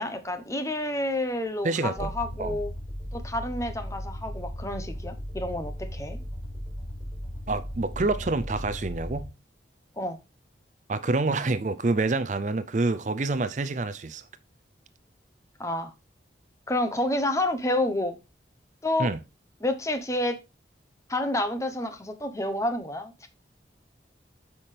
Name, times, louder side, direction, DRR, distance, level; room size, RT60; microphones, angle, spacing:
voice 1, 0.0-2.7 3.1-6.2 10.0-10.2 15.6-15.9 16.7-18.2 18.8-19.1 19.6-20.4 21.1-23.3, left 1 dB, 15° left, 0.9 m, -29 dB
voice 2, 1.6-2.1 2.4-2.6 7.5-9.3 10.9-14.2 19.0-19.2, right 3 dB, 40° right, 0.5 m, -27 dB
sound 1, 2.0-9.3, equal, 5° right, 4.4 m, -36 dB
8.6 x 5.7 x 3.3 m
head